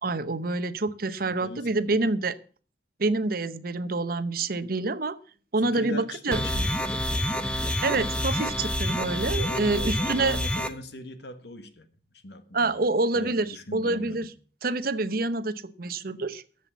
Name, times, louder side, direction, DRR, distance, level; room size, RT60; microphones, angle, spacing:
voice 1, 0.0-2.3 3.0-5.2 5.5-6.4 7.4-10.4 12.5-14.3 14.6-16.4, right 3 dB, 55° right, 0.8 m, -27 dB
voice 2, 1.3-2.1 5.6-7.0 9.2-11.9 12.1-12.9 13.1-14.3, left 1 dB, 70° left, 1.5 m, -40 dB
sound 1, 6.3-10.7, left 1 dB, 5° left, 1.0 m, -28 dB
11.0 x 7.9 x 8.1 m
head